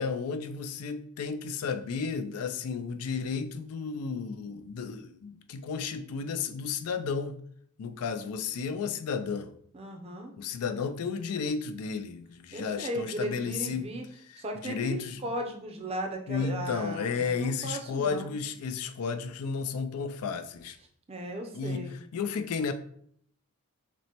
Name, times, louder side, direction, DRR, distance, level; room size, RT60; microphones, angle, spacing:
voice 1, 0.0-7.4 7.8-9.5 10.4-13.8 14.6-15.2 16.3-20.8 21.5-21.8 22.1-22.7, left 5 dB, 80° left, 9 dB, 0.4 m, -33 dB
voice 2, 9.7-10.3 12.5-14.0 14.4-18.3 21.1-22.0, right 1 dB, 25° right, 3 dB, 0.5 m, -36 dB
5.9 x 2.1 x 2.8 m, 0.63 s
head